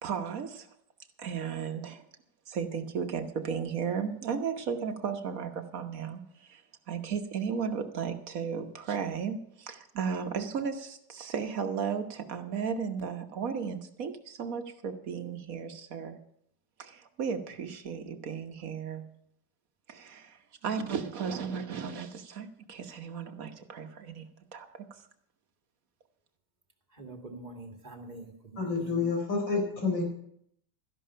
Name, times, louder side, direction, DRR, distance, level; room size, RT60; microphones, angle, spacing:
voice 1, 0.0-0.7 1.2-2.0 2.5-16.2 16.8-19.0 19.9-24.2 24.5-25.0, right 6 dB, 50° right, 6 dB, 1.5 m, -35 dB
voice 2, 27.0-29.0, right 2 dB, 25° right, 2 dB, 2.0 m, -45 dB
voice 3, 28.6-30.0, left 4 dB, 80° left, 1 dB, 5.1 m, -29 dB
13.5 x 11.0 x 5.6 m, 0.71 s
omnidirectional pair, 2.0 m